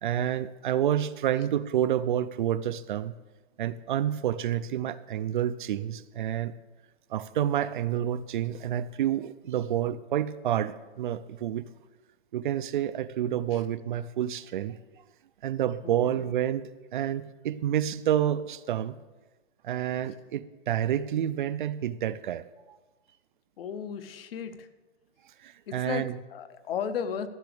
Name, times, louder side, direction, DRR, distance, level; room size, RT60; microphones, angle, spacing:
voice 1, 0.0-3.2 3.6-6.5 7.1-11.7 12.3-14.8 15.4-19.0 19.6-22.8 25.4-26.2, right 10 dB, 50° right, 14 dB, 0.4 m, -29 dB
voice 2, 15.8-16.2 23.6-24.7 25.7-27.3, left 7 dB, 65° left, 11 dB, 1.0 m, -35 dB
14.0 x 6.0 x 6.8 m, 1.2 s
hypercardioid pair, 170°, 32 cm